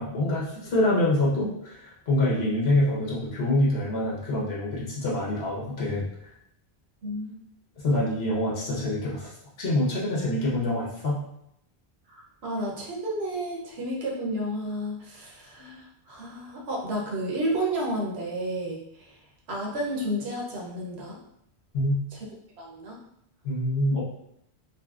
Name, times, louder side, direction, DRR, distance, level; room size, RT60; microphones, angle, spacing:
voice 1, 0.0-6.0 7.8-9.3 9.6-11.2 21.7-22.0 23.4-24.0, left 1 dB, 70° left, -5 dB, 1.2 m, -25 dB
voice 2, 7.0-7.4 12.1-19.1 19.5-21.2 22.6-23.0, right 1 dB, 70° right, -2 dB, 1.0 m, -31 dB
4.1 x 2.2 x 2.4 m, 0.75 s
omnidirectional pair, 1.1 m